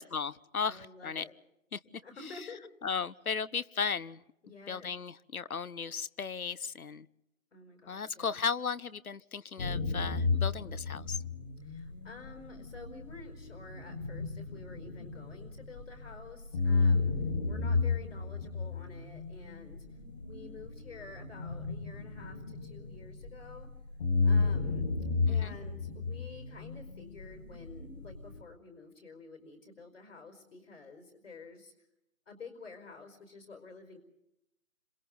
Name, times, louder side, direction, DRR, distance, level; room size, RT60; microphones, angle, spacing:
voice 1, 0.0-1.2 1.7-1.8 2.8-4.2 4.7-7.1 7.9-11.2 25.3-25.5, left 6 dB, 90° left, 19 dB, 1.0 m, -35 dB
voice 2, 0.6-1.3 1.8-2.7 4.4-4.9 7.5-8.4 11.6-19.8 20.2-23.7 24.2-24.9 25.3-31.7 32.3-34.0, left 4 dB, 65° left, 5 dB, 5.1 m, -50 dB
sound 1, 9.6-16.1 16.5-23.6 24.0-28.4, left 4 dB, 30° left, 2.0 m, -33 dB
30.0 x 26.5 x 3.9 m, 0.85 s
figure-of-eight pair, 160°, 42 cm